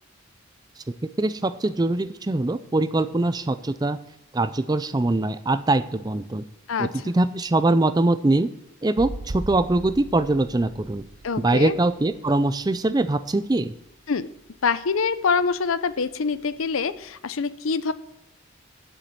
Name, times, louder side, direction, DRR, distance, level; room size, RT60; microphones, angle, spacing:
voice 1, 1.2-4.0 4.3-6.4 6.8-8.5 8.8-11.0 11.4-13.7, right 2 dB, 20° right, 13 dB, 0.4 m, -22 dB
voice 2, 6.7-7.1 11.2-11.7 14.1-14.3 14.6-17.9, left 5 dB, 85° left, 14 dB, 0.6 m, -25 dB
sound 1, 9.0-13.5 15.3-15.4, right 2 dB, 75° right, 1.0 m, -39 dB
8.0 x 7.2 x 8.6 m, 0.81 s
head